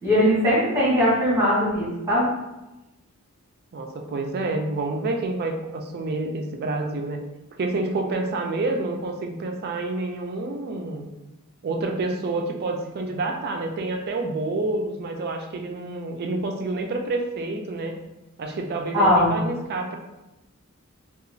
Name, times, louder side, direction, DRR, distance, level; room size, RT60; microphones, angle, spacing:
voice 1, 0.0-2.3 18.9-19.3, equal, 15° right, -8 dB, 1.4 m, -20 dB
voice 2, 3.7-7.2 7.6-11.1 11.6-18.0 18.4-20.0, right 2 dB, 45° right, 3 dB, 0.3 m, -28 dB
2.9 x 2.3 x 2.6 m, 0.98 s
head